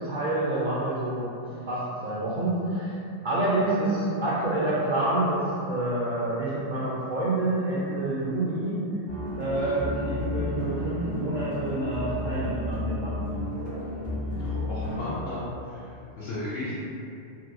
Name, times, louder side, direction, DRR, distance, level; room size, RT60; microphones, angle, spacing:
voice 1, 0.0-1.3 1.7-3.0 3.2-8.9 9.4-13.3, right 1 dB, 55° right, -8 dB, 0.5 m, -28 dB
sound 1, 9.1-15.1, left 1 dB, 85° right, 1.5 m, -32 dB
voice 2, 14.4-15.4 15.6-16.7, left 1 dB, 65° left, -10 dB, 0.7 m, -35 dB
2.9 x 2.6 x 2.5 m, 2.6 s
omnidirectional pair, 1.2 m